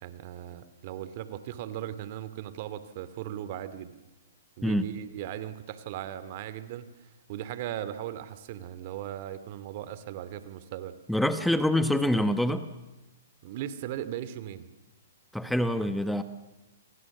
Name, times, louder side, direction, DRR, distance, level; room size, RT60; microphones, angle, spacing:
voice 1, 0.0-3.9 4.6-11.0 13.4-14.7, right 11 dB, 50° right, 14 dB, 2.5 m, -38 dB
voice 2, 11.1-12.7 15.3-16.2, left 1 dB, ahead, 10 dB, 1.2 m, -25 dB
30.0 x 24.0 x 7.3 m, 1.1 s
hypercardioid pair, 130°, 0 cm